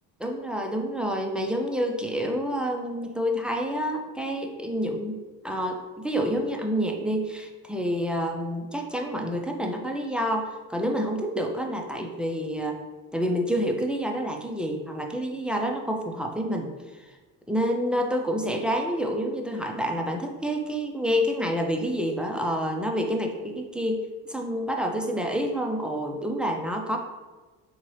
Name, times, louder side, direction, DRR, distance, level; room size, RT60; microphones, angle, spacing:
voice 1, 0.2-5.2 5.4-12.8 13.1-16.7 17.0-17.1 17.5-27.0, equal, ahead, 1 dB, 0.3 m, -28 dB
3.7 x 2.8 x 3.0 m, 1.3 s
hypercardioid pair, 55°, 46 cm